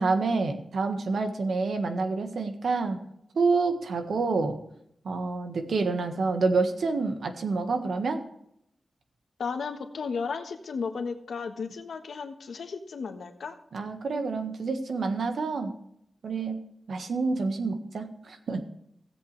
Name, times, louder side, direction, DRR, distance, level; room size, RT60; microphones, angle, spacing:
voice 1, 0.0-3.0 3.3-4.6 5.0-8.2 13.7-15.7 16.2-16.6 16.9-18.6, right 4 dB, 70° right, 6 dB, 1.5 m, -28 dB
voice 2, 9.4-13.6, left 5 dB, 90° left, 6 dB, 1.3 m, -34 dB
16.5 x 7.9 x 3.3 m, 0.73 s
wide cardioid pair, 175°, 0 cm